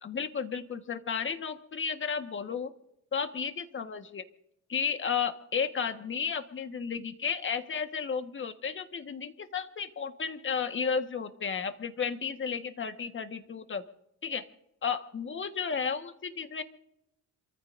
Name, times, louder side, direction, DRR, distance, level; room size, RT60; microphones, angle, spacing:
voice 1, 0.0-2.7 3.1-4.2 4.7-13.8 14.2-14.5 14.8-16.6, left 6 dB, 40° left, 8 dB, 1.5 m, -33 dB
28.0 x 14.5 x 2.7 m, 0.81 s
cardioid pair, 90°, 30 cm